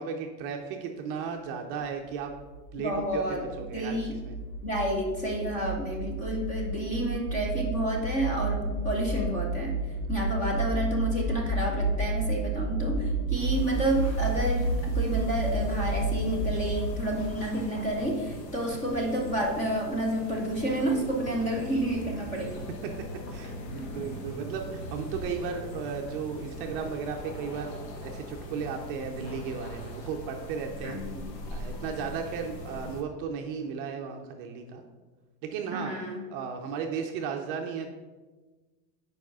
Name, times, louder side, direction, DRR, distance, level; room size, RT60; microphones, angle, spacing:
voice 1, 0.0-2.3 2.7-4.4 22.8-22.9 23.3-31.0 31.5-34.8 35.4-35.9 36.3-37.9, right 6 dB, 35° right, 3 dB, 0.5 m, -35 dB
sound 1, 2.2-17.5, right 2 dB, 40° left, 1.0 m, -31 dB
voice 2, 2.8-4.2 4.6-9.8 10.1-22.6 30.8-31.3 35.7-36.2, right 1 dB, 15° left, 0 dB, 0.5 m, -30 dB
sound 2, 13.3-33.0, left 1 dB, 80° left, 1.3 m, -41 dB
4.8 x 4.7 x 5.9 m, 1.3 s
supercardioid pair, 155°, 49 cm